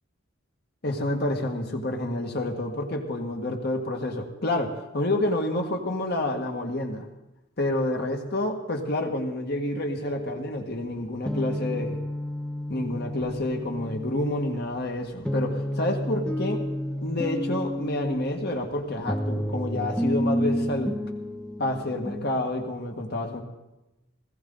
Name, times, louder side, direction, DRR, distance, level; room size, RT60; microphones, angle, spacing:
voice 1, 0.8-7.0 7.6-12.0 12.7-16.6 17.0-20.9 21.6-23.4, left 1 dB, 55° left, 3 dB, 1.9 m, -28 dB
sound 1, 10.1-22.4, left 1 dB, 5° left, 0.7 m, -31 dB
20.0 x 15.5 x 4.0 m, 1.0 s
head